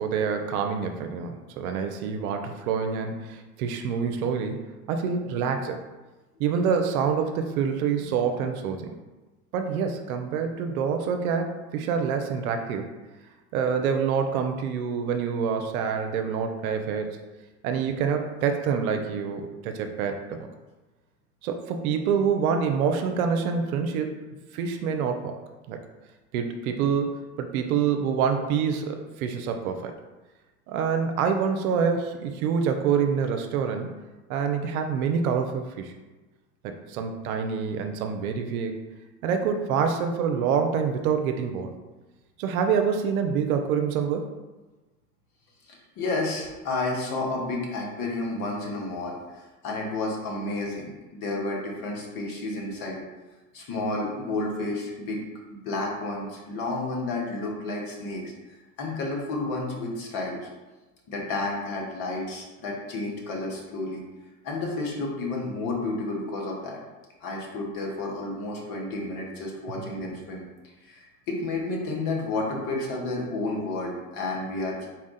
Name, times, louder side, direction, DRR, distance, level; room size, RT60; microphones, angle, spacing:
voice 1, 0.0-5.8 6.4-8.9 9.5-12.9 13.5-17.2 17.6-20.5 21.4-24.2 24.5-25.4 25.7-25.8 26.3-27.1 27.4-29.9 30.7-34.0 34.3-35.9 36.6-38.8 39.2-41.7 42.4-44.3 69.8-69.9, right 6 dB, 65° right, 5 dB, 0.6 m, -26 dB
voice 2, 45.6-53.0 53.5-55.2 55.5-60.5 61.1-64.0 64.4-66.8 67.2-70.5 70.8-74.9, left 2 dB, 45° left, -1 dB, 1.3 m, -31 dB
4.1 x 2.4 x 4.0 m, 1.2 s
hypercardioid pair, 85°, 47 cm